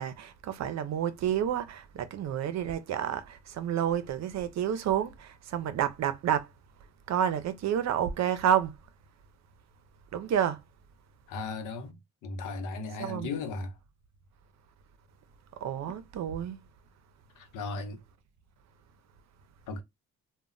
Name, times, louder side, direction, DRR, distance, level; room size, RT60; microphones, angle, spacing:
voice 1, 0.0-6.5 7.1-8.7 10.1-10.6 13.0-13.4 15.6-16.6, right 9 dB, 65° right, 0.6 m, -29 dB
voice 2, 11.3-13.8 17.4-18.0 19.7-19.8, left 3 dB, 85° left, 0.7 m, -36 dB
2.2 x 2.0 x 3.7 m
cardioid pair, 90°, 30 cm